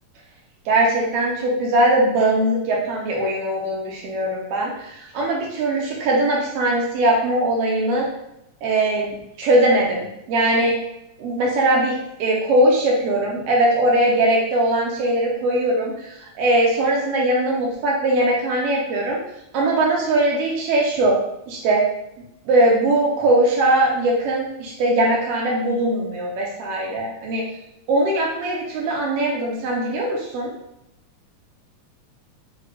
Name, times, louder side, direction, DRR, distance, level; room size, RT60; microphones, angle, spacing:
voice 1, 0.7-8.1 8.6-10.7 11.2-19.2 19.5-21.2 21.5-21.8 22.5-27.4 27.9-30.5, right 1 dB, 85° right, -2 dB, 1.3 m, -20 dB
5.9 x 3.1 x 2.2 m, 0.84 s
omnidirectional pair, 3.5 m